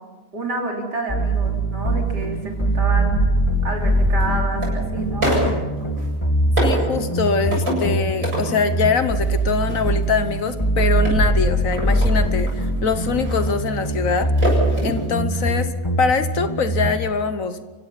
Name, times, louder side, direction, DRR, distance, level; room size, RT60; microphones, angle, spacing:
voice 1, 0.3-3.3 3.6-5.4, right 2 dB, 80° right, 0 dB, 4.1 m, -28 dB
sound 1, 1.1-17.1, right 1 dB, 15° left, 2.3 m, -22 dB
sound 2, 2.3-2.4 3.7-4.7 5.2-6.1 6.6-6.9 7.5-7.9 8.2-8.8 9.2-15.1 15.3-15.4, equal, 55° right, 8.4 m, -27 dB
voice 2, 6.6-14.3 14.8-15.7 16.0-17.6, left 5 dB, 55° left, 10 dB, 1.4 m, -23 dB
29.5 x 16.5 x 5.8 m, 1.3 s
omnidirectional pair, 1.8 m